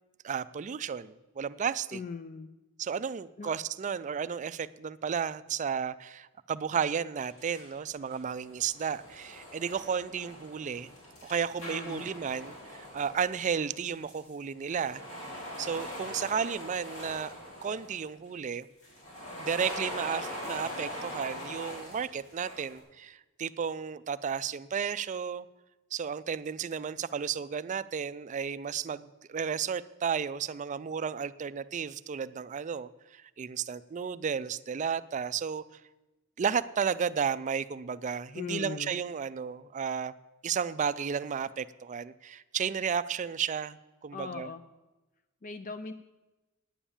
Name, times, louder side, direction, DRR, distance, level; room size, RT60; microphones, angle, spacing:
voice 1, 0.2-2.0 2.8-10.9 11.2-17.3 17.6-18.7 19.4-25.5 25.9-35.6 36.4-40.1 40.4-43.8 44.0-44.5, right 7 dB, 35° right, 16 dB, 0.4 m, -33 dB
voice 2, 1.9-2.5 3.4-3.5 11.6-12.1 38.4-39.0 44.1-44.6 45.4-45.9, left 4 dB, 40° left, 10 dB, 0.4 m, -39 dB
sound 1, 7.2-7.7 8.1-14.3 14.6-18.1 18.8-22.8, left 1 dB, 85° left, 4.0 m, -42 dB
9.9 x 8.7 x 7.1 m, 1.1 s
head